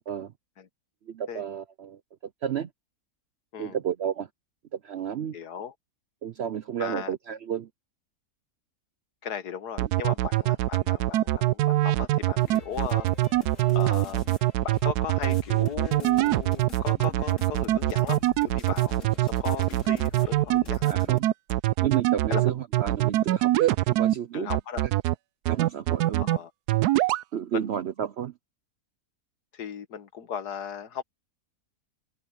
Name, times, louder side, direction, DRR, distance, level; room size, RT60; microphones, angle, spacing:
voice 1, 1.1-2.0 2.4-2.7 3.6-4.3 4.8-5.3 6.2-7.7 9.8-9.9 20.9-21.3 21.8-24.5 25.5-26.4 27.3-28.3, right 9 dB, 65° right, 0.7 m, -31 dB
voice 2, 5.3-5.7 6.8-7.1 9.2-13.1 13.7-14.2 14.6-21.0 22.3-22.5 24.3-24.8 26.2-26.5 27.5-27.7 29.5-31.0, left 8 dB, 85° left, 1.8 m, -37 dB
sound 1, 9.8-24.1 24.5-25.1 25.5-26.4 26.7-27.2, right 16 dB, 85° right, 1.1 m, -23 dB
sound 2, 12.3-21.2, left 3 dB, 50° left, 3.2 m, -45 dB
omnidirectional pair, 1.6 m